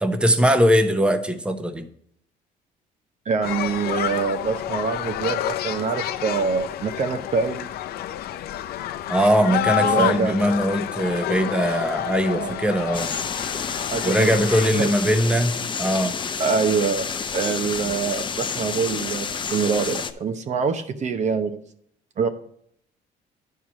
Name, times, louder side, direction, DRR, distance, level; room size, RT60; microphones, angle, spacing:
voice 1, 0.0-1.9 9.1-13.2 14.0-16.1, equal, 5° right, 7 dB, 0.9 m, -21 dB
voice 2, 3.3-7.7 9.8-10.3 12.3-12.6 13.9-14.3 14.7-14.9 16.4-17.1 17.3-21.6 22.2-22.3, right 5 dB, 45° right, 8 dB, 0.8 m, -25 dB
sound 1, 3.4-14.7, left 11 dB, 65° left, 0.6 m, -29 dB
sound 2, 12.9-20.1, left 6 dB, 30° left, 0.6 m, -29 dB
9.9 x 4.7 x 6.1 m, 0.67 s
cardioid pair, 110°, 17 cm